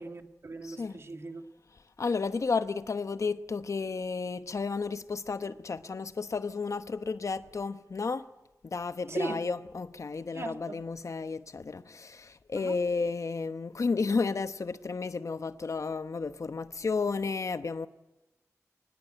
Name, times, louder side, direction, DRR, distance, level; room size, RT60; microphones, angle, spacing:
voice 1, 0.0-1.4 9.1-9.4 10.3-10.8 12.6-12.8, right 2 dB, 50° right, 1.9 m, -38 dB
voice 2, 0.7-1.0 2.0-8.2 8.6-17.9, left 4 dB, 65° left, 1.0 m, -32 dB
24.0 x 19.5 x 8.9 m
wide cardioid pair, 100°, 6 cm